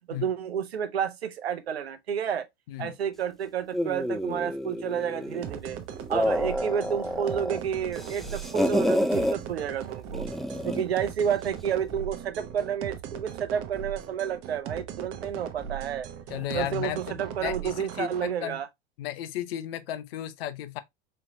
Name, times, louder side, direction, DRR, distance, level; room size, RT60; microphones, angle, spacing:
voice 1, 0.1-2.5 2.8-5.8 6.1-10.3 10.6-16.1 16.5-18.7, right 8 dB, 85° right, 0.7 m, -30 dB
sound 1, 3.7-5.5 5.9-7.6 7.9-9.4 10.1-10.9, left 1 dB, ahead, 0.3 m, -28 dB
sound 2, 5.4-18.3, right 9 dB, 45° right, 0.8 m, -39 dB
voice 2, 16.3-18.6 19.0-20.8, left 12 dB, 70° left, 0.7 m, -34 dB
4.3 x 3.1 x 2.6 m
hypercardioid pair, 85°, 30 cm